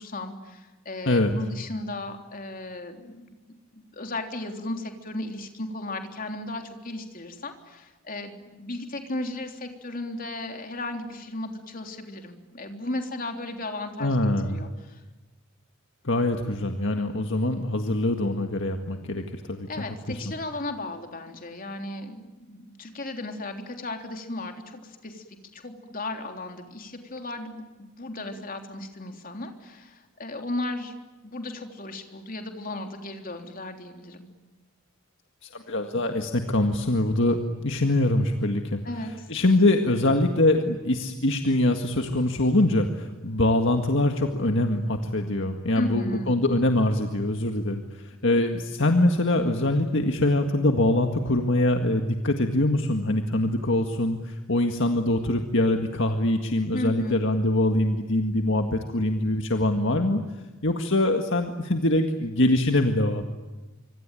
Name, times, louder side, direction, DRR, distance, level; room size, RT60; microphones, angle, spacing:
voice 1, 0.0-3.3 3.7-14.2 14.5-15.0 19.7-30.9 31.2-34.3 38.8-39.3 45.7-46.4 56.7-57.2, left 2 dB, 40° left, 4 dB, 3.4 m, -35 dB
voice 2, 14.0-14.6 16.0-20.2 35.4-38.8 39.3-60.2 60.6-63.2, left 1 dB, 60° left, 4 dB, 1.9 m, -24 dB
25.5 x 25.5 x 9.1 m, 1.2 s
head